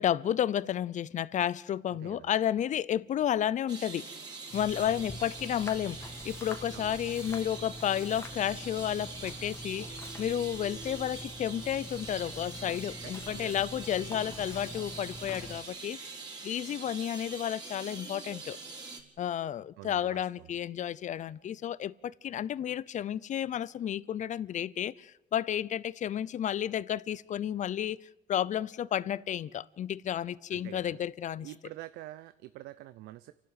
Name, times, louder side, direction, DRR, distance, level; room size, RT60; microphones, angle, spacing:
voice 1, 0.0-4.1 4.5-6.0 6.2-9.9 10.2-16.0 16.4-18.6 19.2-28.0 28.3-31.5, left 10 dB, 45° left, 0.7 m, -32 dB
voice 2, 1.9-2.3 4.8-5.0 6.7-6.9 13.0-13.7 14.3-14.4 19.8-20.5 30.5-31.0 31.4-33.3, right 16 dB, 90° right, 0.7 m, -47 dB
sound 1, 3.7-19.0, right 3 dB, 25° right, 4.2 m, -44 dB
sound 2, 4.5-15.6, left 1 dB, 15° left, 1.8 m, -45 dB
29.5 x 12.0 x 8.1 m
cardioid pair, 110°, 17 cm